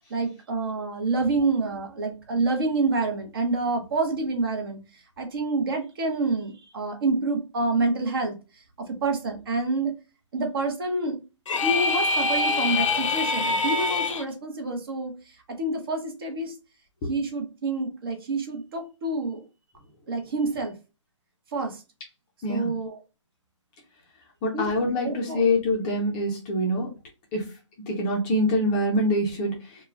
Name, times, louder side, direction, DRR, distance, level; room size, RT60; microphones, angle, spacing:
voice 1, 0.1-4.8 5.2-8.4 8.8-9.9 10.3-11.2 11.6-15.1 15.5-16.5 17.1-19.4 20.1-20.7 21.5-21.8 22.5-23.0 24.5-24.7 25.0-25.4, right 3 dB, 50° right, 4 dB, 0.7 m, -27 dB
sound 1, 11.5-14.2, left 3 dB, 80° left, 0.5 m, -24 dB
voice 2, 22.4-22.7 24.4-26.9 27.3-27.5 27.9-29.8, left 1 dB, 15° left, -2 dB, 0.4 m, -25 dB
2.2 x 2.1 x 3.4 m, 0.31 s
hypercardioid pair, 155°, 16 cm